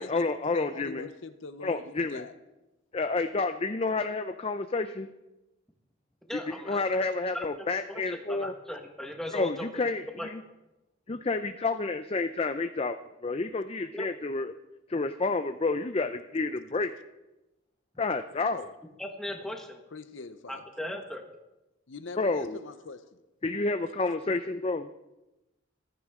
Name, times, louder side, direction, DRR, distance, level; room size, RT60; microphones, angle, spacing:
voice 1, 0.0-1.1 1.6-2.2 2.9-5.1 6.3-8.5 9.3-10.4 11.1-13.0 13.2-14.5 14.9-16.9 18.0-18.7 22.2-22.6 23.4-24.9, left 3 dB, 30° left, 9 dB, 0.5 m, -30 dB
voice 2, 0.5-2.3 18.3-18.7 19.9-20.7 21.9-23.2, left 4 dB, 65° left, 10 dB, 0.8 m, -43 dB
voice 3, 6.3-9.7 10.2-10.3 13.9-14.1 19.0-19.8 20.5-21.2, left 1 dB, ahead, 2 dB, 1.5 m, -38 dB
15.0 x 13.5 x 3.7 m, 0.99 s
head